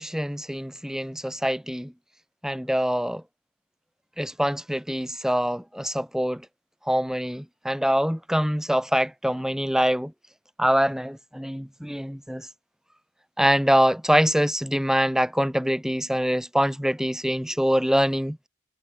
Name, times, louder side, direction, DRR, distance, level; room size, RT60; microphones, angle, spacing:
voice 1, 0.0-1.9 2.4-3.2 4.2-6.4 6.9-10.1 10.6-12.5 13.4-18.4, equal, ahead, 6.3 m, -24 dB
head